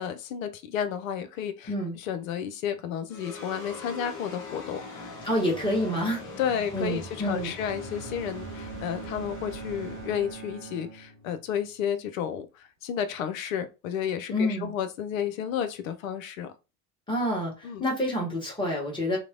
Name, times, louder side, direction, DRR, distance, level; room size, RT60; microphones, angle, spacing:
voice 1, 0.0-5.1 6.4-16.5 17.6-17.8, left 8 dB, 65° left, 0.6 m, -32 dB
sound 1, 3.1-11.6, left 3 dB, 40° left, 1.0 m, -42 dB
voice 2, 5.2-6.2 6.7-7.5 14.3-14.7 17.1-19.2, left 1 dB, 10° left, 1.4 m, -28 dB
Bowed string instrument, 7.6-11.7, right 6 dB, 55° right, 0.8 m, -42 dB
2.9 x 2.1 x 2.5 m
figure-of-eight pair, 65°, 44 cm